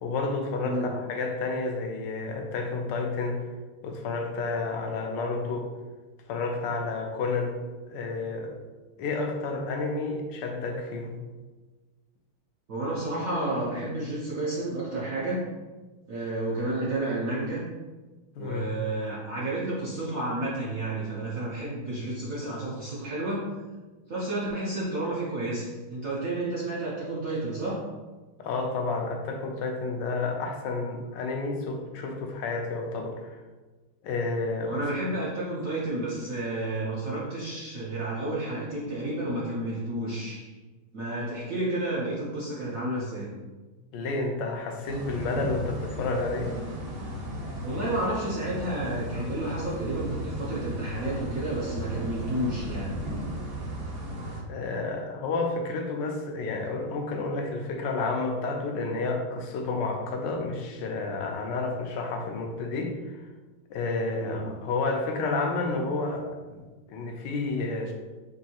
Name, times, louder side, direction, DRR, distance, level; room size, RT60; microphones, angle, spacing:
voice 1, 0.0-3.4 3.8-5.7 6.3-7.6 7.9-8.5 9.0-11.2 18.3-18.8 28.4-33.4 34.0-34.7 43.9-46.5 54.5-63.2 63.7-66.6 66.9-67.9, left 3 dB, 70° left, 2 dB, 1.1 m, -30 dB
voice 2, 12.7-15.5 16.1-17.6 18.4-23.5 24.1-27.8 34.6-40.5 40.9-43.3 47.6-52.9 64.2-64.4, right 2 dB, 60° right, -7 dB, 0.9 m, -31 dB
sound 1, 44.8-54.4, equal, 80° right, 0.5 m, -35 dB
5.3 x 2.7 x 2.8 m, 1.3 s
omnidirectional pair, 2.3 m